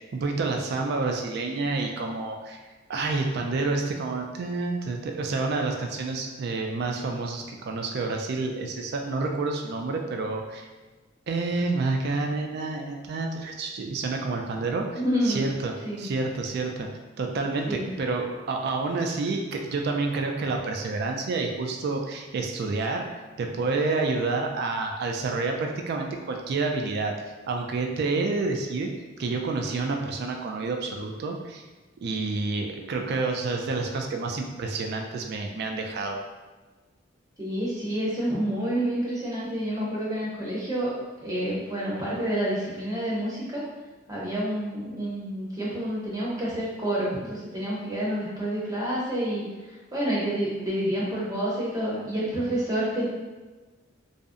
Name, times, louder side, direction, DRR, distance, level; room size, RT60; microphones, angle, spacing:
voice 1, 0.1-2.6 2.9-10.7 11.3-16.9 17.2-27.1 27.5-28.9 29.2-31.6 32.0-36.2, right 3 dB, 55° right, 2 dB, 0.3 m, -29 dB
voice 2, 14.9-15.4 15.8-16.1 17.7-17.9 37.4-40.9 41.2-43.6 44.1-49.4 49.9-53.0, right 1 dB, 20° right, -7 dB, 0.7 m, -28 dB
2.6 x 2.0 x 2.4 m, 1.3 s
head